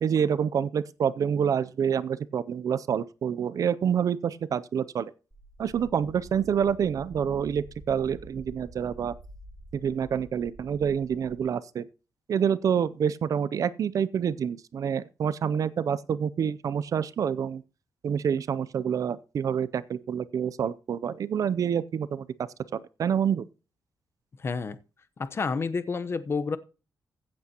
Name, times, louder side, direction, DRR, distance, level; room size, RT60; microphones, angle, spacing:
voice 1, 0.0-5.1 5.6-9.1 9.7-11.8 12.3-17.6 18.0-22.3 22.7-23.4, right 8 dB, 60° right, 0.5 m, -27 dB
sound 1, 5.3-11.4, right 1 dB, 20° right, 2.1 m, -48 dB
voice 2, 24.4-24.8 25.2-26.6, left 4 dB, 40° left, 0.9 m, -29 dB
15.5 x 8.3 x 2.9 m
cardioid pair, 110°, 7 cm